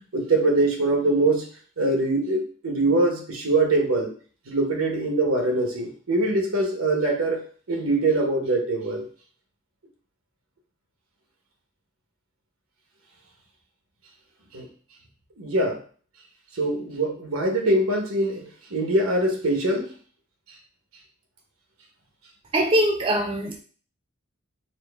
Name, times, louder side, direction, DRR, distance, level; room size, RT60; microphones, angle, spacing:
voice 1, 0.1-1.5 1.8-4.1 4.5-9.0 14.5-14.7 15.4-15.8 16.6-19.9, right 2 dB, 85° right, 1 dB, 1.0 m, -23 dB
voice 2, 22.5-23.6, right 1 dB, 25° right, 2 dB, 0.3 m, -22 dB
4.3 x 2.1 x 3.3 m, 0.42 s
head